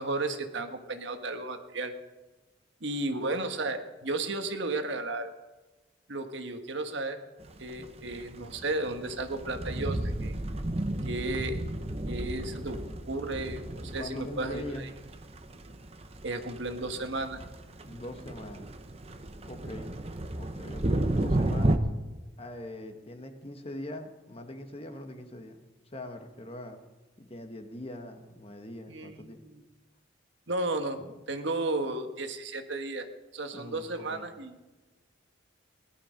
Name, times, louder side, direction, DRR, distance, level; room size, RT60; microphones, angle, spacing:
voice 1, 0.0-1.9 2.8-5.3 6.1-7.2 7.6-10.3 11.0-11.6 12.1-12.8 13.1-14.9 16.2-17.4 28.9-29.6 30.5-33.1 33.3-34.6, right 2 dB, 60° right, 7 dB, 1.3 m, -33 dB
sound 1, 7.4-21.8, right 1 dB, 30° right, 0.8 m, -33 dB
voice 2, 13.9-14.9 17.8-18.7 19.5-20.0 20.3-21.8 22.4-25.6 25.9-26.8 27.2-29.4 33.5-34.3, left 1 dB, 30° left, 6 dB, 1.3 m, -42 dB
18.5 x 11.5 x 5.1 m, 1.2 s
head